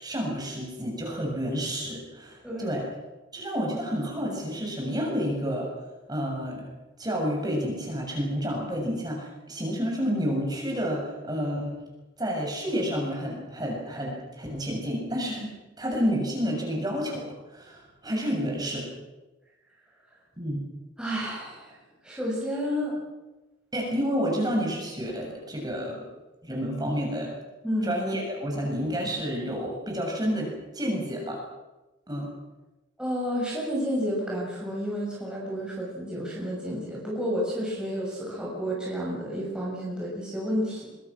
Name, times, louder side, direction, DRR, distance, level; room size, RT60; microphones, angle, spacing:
voice 1, 0.0-2.8 3.3-5.7 6.1-6.6 7.0-11.7 12.2-18.9 20.4-20.7 23.7-26.0 26.4-27.3 27.8-31.4 32.1-32.3, equal, 20° right, -1 dB, 7.3 m, -30 dB
voice 2, 21.0-21.8 22.0-22.9 27.6-27.9 33.0-40.9, equal, 5° right, -5 dB, 6.6 m, -30 dB
24.0 x 24.0 x 6.3 m, 1.1 s
head